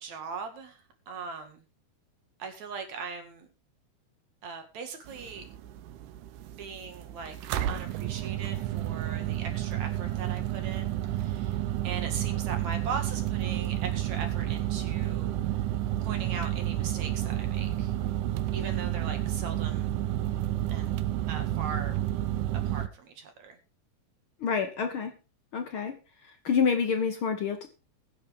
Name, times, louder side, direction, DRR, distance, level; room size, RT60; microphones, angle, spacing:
voice 1, 0.0-1.6 2.4-3.5 4.4-5.5 6.6-7.4 7.7-15.7 16.0-17.9 18.5-19.9 20.7-20.9 21.3-22.0 22.7-23.6, right 5 dB, 65° right, 6 dB, 3.2 m, -40 dB
sound 1, 5.1-22.9, right 13 dB, 90° right, 2.4 m, -31 dB
voice 2, 24.4-25.1 25.5-26.0 26.4-27.7, left 6 dB, 60° left, 6 dB, 1.4 m, -27 dB
21.5 x 7.3 x 3.5 m, 0.31 s
omnidirectional pair, 3.5 m